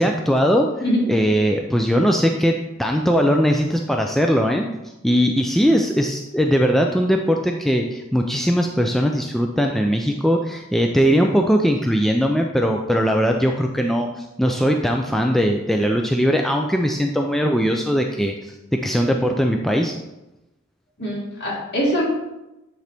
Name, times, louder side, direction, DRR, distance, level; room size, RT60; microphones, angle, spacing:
voice 1, 0.0-0.7 1.0-4.7 5.0-19.9, equal, ahead, 2 dB, 0.3 m, -20 dB
voice 2, 21.0-22.0, equal, 55° left, -5 dB, 2.4 m, -22 dB
9.1 x 3.9 x 3.4 m, 0.96 s
head